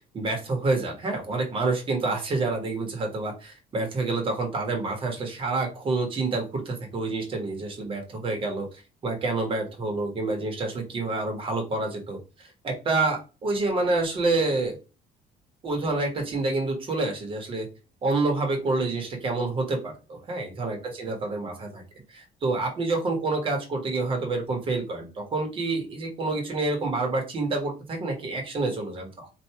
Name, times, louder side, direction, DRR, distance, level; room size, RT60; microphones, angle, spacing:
voice 1, 0.1-8.7 9.0-12.2 12.6-14.8 15.6-17.6 18.0-21.8 22.1-29.3, right 3 dB, 35° right, 2 dB, 1.2 m, -28 dB
4.6 x 2.6 x 2.8 m, 0.33 s
cardioid pair, 155°, 16 cm